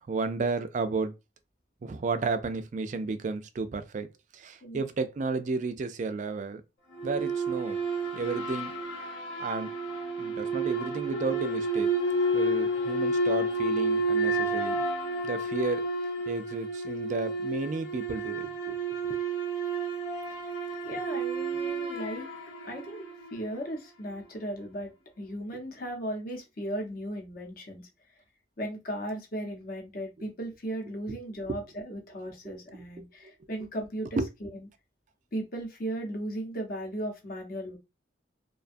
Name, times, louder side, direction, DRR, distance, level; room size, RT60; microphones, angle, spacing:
voice 1, 0.1-1.1 1.8-6.6 7.0-7.8 8.1-8.7 9.4-9.7 10.2-11.9 12.3-14.8 15.2-15.9 16.3-18.8 19.1-19.2 20.9-21.0 31.5-31.6 34.2-34.3, right 3 dB, 40° right, 0.3 m, -32 dB
sound 1, 6.9-23.5, right 2 dB, 85° left, 0.8 m, -30 dB
voice 2, 20.8-22.3 22.6-23.0 23.3-27.8 28.6-34.7 35.3-37.8, right 1 dB, 50° left, 0.7 m, -36 dB
2.4 x 2.2 x 2.5 m
head